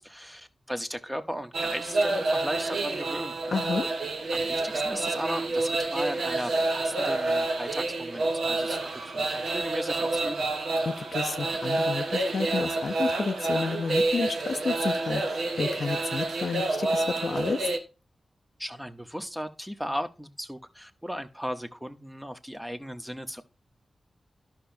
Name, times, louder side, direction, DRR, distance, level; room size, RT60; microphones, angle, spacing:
voice 1, 0.0-3.3 4.3-8.8 9.1-10.5 18.6-23.4, equal, 5° right, 0.7 m, -36 dB
sound 1, 1.5-17.8, right 2 dB, 85° right, 1.3 m, -28 dB
voice 2, 3.5-3.9 10.8-17.7, left 4 dB, 55° left, 0.4 m, -31 dB
13.5 x 5.7 x 2.5 m
wide cardioid pair, 165°, 0 cm